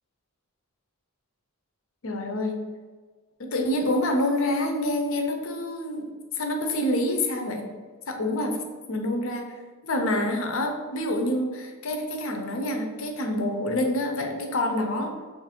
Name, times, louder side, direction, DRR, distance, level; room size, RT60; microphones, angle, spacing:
voice 1, 2.0-2.6 3.4-7.7 8.1-8.6 8.9-9.6 9.8-15.2, left 1 dB, 65° left, 3 dB, 0.6 m, -27 dB
3.1 x 2.5 x 4.2 m, 1.4 s
head